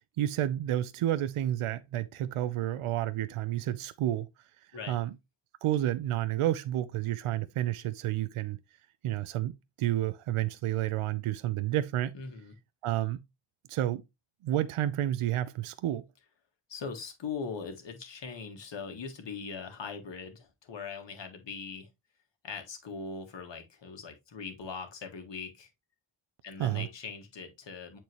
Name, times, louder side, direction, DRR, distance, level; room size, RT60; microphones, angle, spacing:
voice 1, 0.2-4.3 4.9-5.1 5.6-8.6 9.0-12.2 12.8-13.2 13.7-14.0 14.4-16.1 26.6-26.9, right 13 dB, 80° right, 0.7 m, -30 dB
voice 2, 12.1-12.5 16.7-21.9 22.4-25.7 26.4-28.0, left 5 dB, 60° left, 1.8 m, -41 dB
8.0 x 4.4 x 3.0 m
cardioid pair, 105°, 50 cm